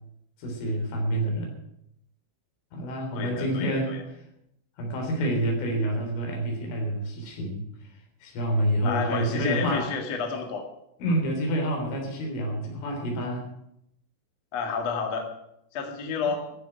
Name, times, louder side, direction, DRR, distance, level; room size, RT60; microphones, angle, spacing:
voice 1, 0.4-1.5 2.7-4.2 4.8-7.6 8.2-9.9 11.0-13.5, right 1 dB, 75° left, 1 dB, 6.1 m, -28 dB
voice 2, 3.1-4.0 8.8-10.7 11.1-11.2 14.5-15.3 15.7-16.5, left 5 dB, 50° left, 3 dB, 2.2 m, -30 dB
14.5 x 7.7 x 9.0 m, 0.77 s
omnidirectional pair, 5.7 m